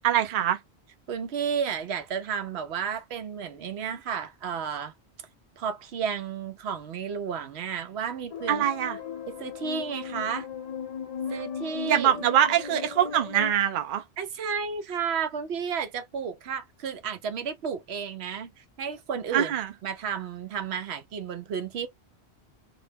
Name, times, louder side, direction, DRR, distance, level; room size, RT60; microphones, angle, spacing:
voice 1, 0.0-0.6 8.5-9.0 11.9-14.0 19.3-19.7, right 10 dB, 60° right, 0.7 m, -23 dB
voice 2, 1.1-4.9 5.6-8.7 9.3-10.5 11.3-12.1 14.2-19.5 19.8-21.9, right 7 dB, 80° right, 0.9 m, -32 dB
sound 1, 8.3-13.5, left 7 dB, 45° left, 0.5 m, -37 dB
2.9 x 2.1 x 3.2 m
omnidirectional pair, 1.1 m